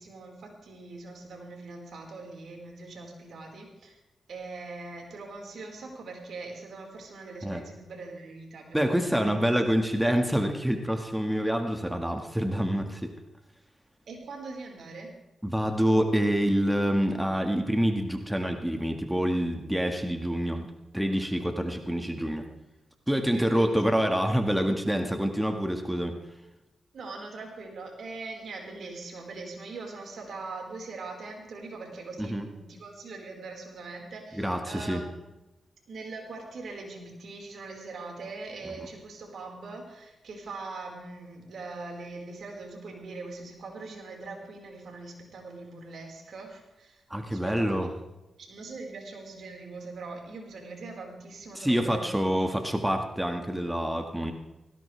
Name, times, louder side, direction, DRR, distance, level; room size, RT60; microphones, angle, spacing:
voice 1, 0.0-4.0 4.3-9.3 14.1-15.1 23.3-23.7 26.9-35.2 35.9-47.0 47.3-47.9 48.4-52.1, right 3 dB, 75° right, 0 dB, 4.9 m, -42 dB
voice 2, 8.7-13.1 15.4-20.7 20.9-22.5 23.1-26.2 32.2-32.5 34.3-35.0 47.1-47.9 51.5-54.3, equal, 5° right, 4 dB, 1.8 m, -27 dB
18.5 x 16.5 x 3.5 m, 1.0 s
cardioid pair, 70°, 0 cm